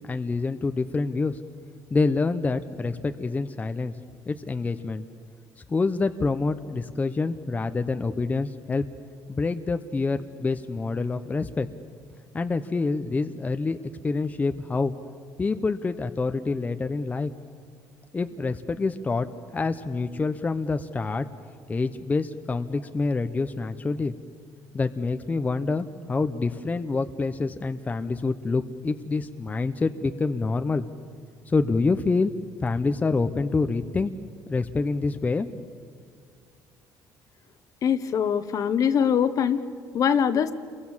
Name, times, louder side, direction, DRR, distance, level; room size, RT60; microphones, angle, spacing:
voice 1, 0.0-1.4 1.9-3.9 4.3-5.0 5.7-8.9 9.3-11.7 12.3-13.8 14.0-14.9 15.4-17.3 18.1-21.2 21.7-24.1 24.7-30.8 31.5-32.3 32.6-34.1 34.5-35.5, left 3 dB, 20° left, 8 dB, 0.8 m, -26 dB
voice 2, 37.8-39.6 39.9-40.5, left 8 dB, 50° left, 11 dB, 1.3 m, -22 dB
29.0 x 22.5 x 7.4 m, 2.1 s
cardioid pair, 115°, 7 cm